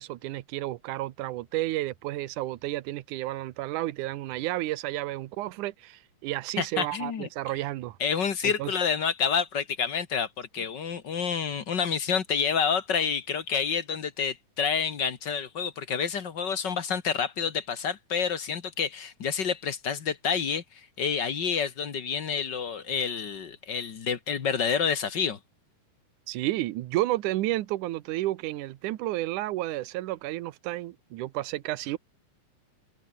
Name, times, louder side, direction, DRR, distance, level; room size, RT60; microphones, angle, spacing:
voice 1, 0.0-8.0 8.4-8.7 10.6-10.7 26.3-32.0, right 16 dB, 70° right, 2.3 m, -31 dB
voice 2, 6.6-7.3 8.0-20.6 21.0-25.4, left 6 dB, 45° left, 1.5 m, -28 dB
omnidirectional pair, 3.9 m